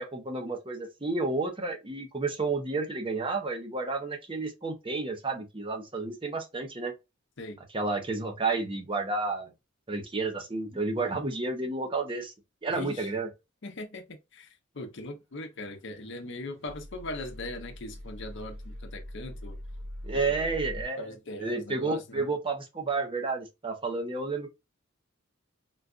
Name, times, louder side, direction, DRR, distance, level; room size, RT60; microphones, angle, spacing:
voice 1, 0.0-6.9 7.7-9.5 9.9-12.3 12.6-13.3 20.0-21.1 21.4-24.5, right 3 dB, 25° right, 0.7 m, -31 dB
voice 2, 12.7-13.1 13.6-19.6 20.1-20.6 21.0-22.3, left 2 dB, 60° left, 0.7 m, -40 dB
sound 1, 15.6-20.8, equal, 85° right, 1.6 m, -42 dB
3.9 x 2.4 x 2.4 m
head